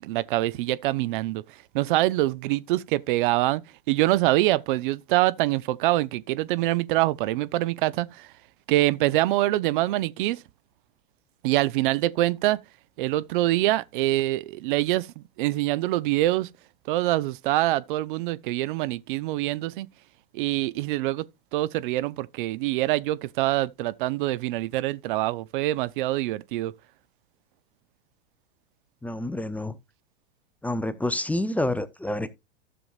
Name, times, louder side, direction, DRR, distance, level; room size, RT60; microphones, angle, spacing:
voice 1, 0.0-1.4 1.7-3.6 3.9-8.3 8.7-10.4 11.4-12.6 13.0-16.5 16.9-19.9 20.3-21.3 21.5-26.7, right 17 dB, 60° right, 0.6 m, -25 dB
voice 2, 29.0-29.7 30.6-32.3, left 1 dB, 5° left, 0.7 m, -28 dB
13.5 x 6.9 x 2.4 m
hypercardioid pair, 100°, 29 cm